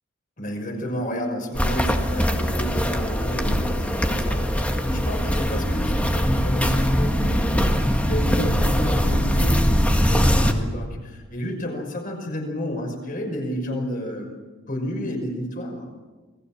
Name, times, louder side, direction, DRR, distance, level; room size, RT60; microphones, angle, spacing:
voice 1, 0.4-14.3 14.7-15.9, equal, 40° left, 3 dB, 5.8 m, -31 dB
Walk footsteps, 1.5-10.5, equal, 5° left, 1.8 m, -21 dB
28.5 x 20.5 x 7.4 m, 1.3 s
head